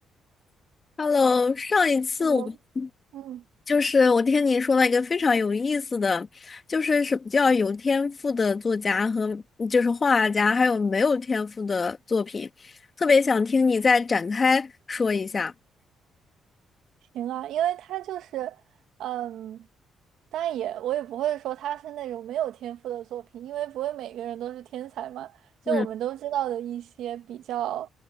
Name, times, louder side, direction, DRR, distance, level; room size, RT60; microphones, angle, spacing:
voice 1, 1.0-2.9 3.7-12.5 13.0-15.5 25.7-25.9, left 4 dB, 35° left, 2.1 m, -23 dB
voice 2, 3.1-3.4 17.1-18.6 19.0-19.6 20.3-25.4 25.7-27.9, right 12 dB, 80° right, 1.4 m, -31 dB
cardioid pair, 90°, 0 cm